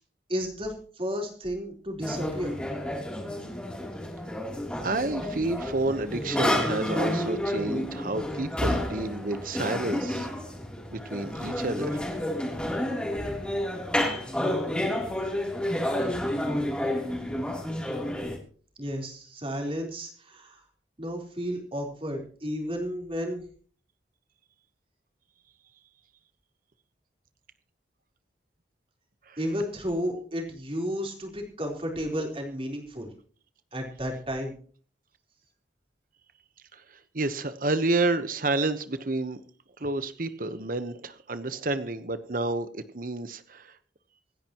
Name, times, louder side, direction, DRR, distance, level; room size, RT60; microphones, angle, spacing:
voice 1, 0.3-2.5 18.8-20.6 21.0-23.4 29.4-33.1 33.7-34.5, equal, 30° right, 1 dB, 4.0 m, -32 dB
sound 1, 2.0-18.4, left 1 dB, 5° left, 3.2 m, -30 dB
voice 2, 4.8-10.3 10.9-12.0 29.3-29.4 36.7-36.8 37.1-39.4 39.8-43.7, right 2 dB, 50° right, 11 dB, 1.1 m, -30 dB
26.0 x 10.5 x 3.0 m, 0.43 s
head